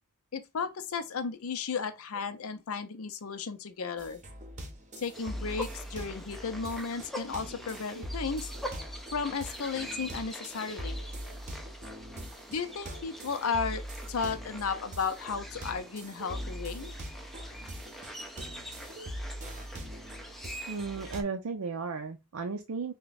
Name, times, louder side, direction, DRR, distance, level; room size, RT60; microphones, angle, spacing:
voice 1, 0.3-4.2 5.0-8.5 9.1-11.0 12.5-16.9, left 5 dB, 70° left, 0.6 m, -34 dB
sound 1, 4.0-21.2, equal, 35° right, 0.8 m, -42 dB
sound 2, 5.1-21.2, equal, ahead, 0.4 m, -45 dB
voice 2, 20.7-22.9, right 4 dB, 80° right, 0.5 m, -35 dB
3.4 x 2.2 x 3.9 m
head